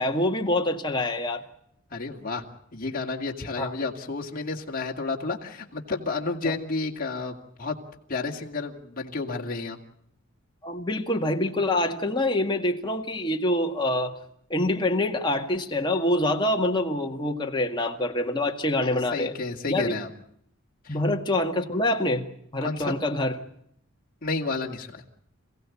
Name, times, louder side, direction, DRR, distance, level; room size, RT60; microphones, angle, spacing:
voice 1, 0.0-1.4 3.6-3.7 6.4-6.6 10.6-14.1 14.5-19.3 19.7-19.9 20.9-22.3 22.5-23.3, left 1 dB, 20° left, 2.0 m, -25 dB
voice 2, 1.9-2.4 2.7-7.8 8.1-9.8 18.8-20.1 20.8-21.0 22.6-23.0 24.2-25.0, left 3 dB, 40° left, 2.5 m, -31 dB
27.5 x 16.5 x 8.6 m
head